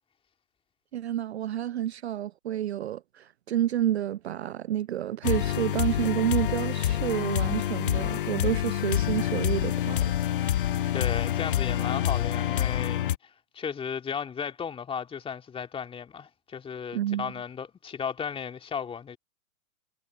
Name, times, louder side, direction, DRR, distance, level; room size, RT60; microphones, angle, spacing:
voice 1, 0.9-10.1 16.9-17.3, right 12 dB, 50° right, 0.5 m, -29 dB
sound 1, 5.2-13.2, left 11 dB, 40° left, 0.4 m, -27 dB
voice 2, 10.9-19.2, left 7 dB, 15° left, 2.7 m, -35 dB
figure-of-eight pair, 110°, 42 cm